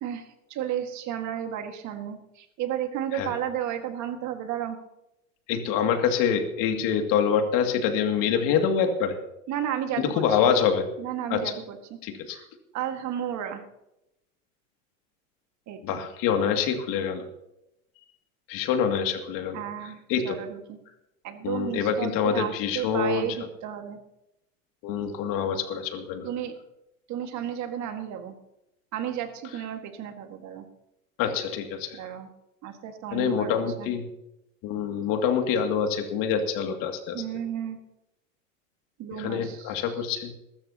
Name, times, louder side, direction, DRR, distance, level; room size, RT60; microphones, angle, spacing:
voice 1, 0.0-4.8 9.5-10.5 11.0-11.8 12.3-12.5 12.7-13.6 15.7-16.0 19.5-20.8 21.2-24.0 26.2-26.5 27.1-28.4 28.9-30.7 31.9-32.3 32.6-33.9 37.1-37.8 39.0-39.8, right 10 dB, 45° right, 6 dB, 1.9 m, -33 dB
voice 2, 5.5-9.2 10.0-10.9 11.3-11.5 12.0-12.4 15.8-17.3 18.5-19.6 20.1-20.4 21.4-23.3 24.8-26.3 31.2-32.0 33.1-34.1 34.6-37.2 39.2-40.3, left 7 dB, 55° left, 5 dB, 2.5 m, -26 dB
22.0 x 13.0 x 2.9 m, 0.87 s
hypercardioid pair, 105°, 41 cm